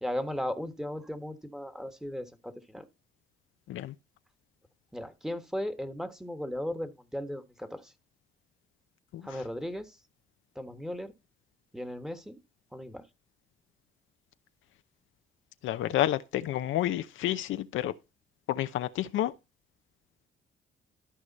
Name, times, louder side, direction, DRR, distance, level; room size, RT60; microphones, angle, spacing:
voice 1, 0.0-2.8 4.9-7.9 9.2-10.0 10.5-11.1 11.7-12.4 12.7-13.0, left 1 dB, ahead, 1.4 m, -36 dB
voice 2, 15.6-18.0 18.5-19.3, left 13 dB, 80° left, 0.7 m, -30 dB
13.0 x 4.9 x 4.1 m
cardioid pair, 90°, 20 cm